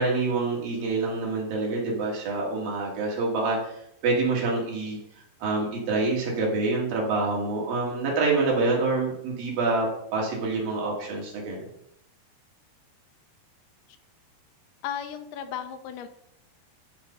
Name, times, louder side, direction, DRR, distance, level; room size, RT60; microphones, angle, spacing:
voice 1, 0.0-3.7 4.0-5.0 5.4-11.7, right 3 dB, 60° right, -2 dB, 3.6 m, -26 dB
voice 2, 14.8-16.1, left 9 dB, 85° left, 8 dB, 2.7 m, -35 dB
11.5 x 4.7 x 5.4 m, 0.76 s
omnidirectional pair, 4.7 m